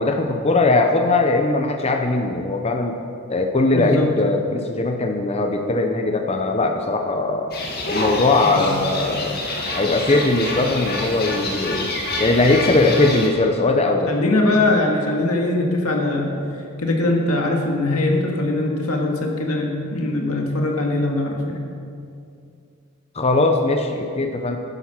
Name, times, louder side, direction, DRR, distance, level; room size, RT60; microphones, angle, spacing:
voice 1, 0.0-3.0 3.3-7.5 7.9-9.4 9.7-11.9 12.2-14.1 23.1-24.6, left 2 dB, 30° left, 4 dB, 0.6 m, -20 dB
voice 2, 3.7-4.1 8.5-8.7 14.1-16.3 16.8-21.6, left 2 dB, 85° left, 1 dB, 1.8 m, -21 dB
sound 1, 7.5-13.3, left 2 dB, 45° left, 1.7 m, -27 dB
11.0 x 10.5 x 5.8 m, 2.5 s
head